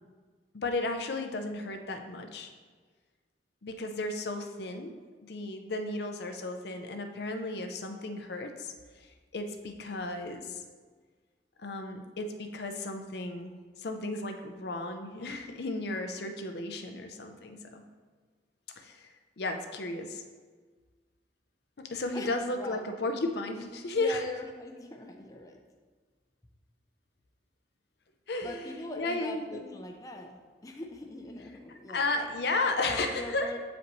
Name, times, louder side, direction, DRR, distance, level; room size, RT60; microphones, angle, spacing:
voice 1, 0.5-2.5 3.6-4.9 5.2-8.7 9.3-10.6 11.6-17.8 18.8-19.1 19.4-20.2 21.8-24.2 28.3-29.7 31.9-33.5, left 2 dB, 65° left, 6 dB, 0.6 m, -34 dB
voice 2, 22.1-22.9 23.9-25.6 28.4-32.1 32.8-33.6, left 1 dB, 20° left, 2 dB, 0.5 m, -42 dB
8.1 x 5.0 x 3.1 m, 1.5 s
head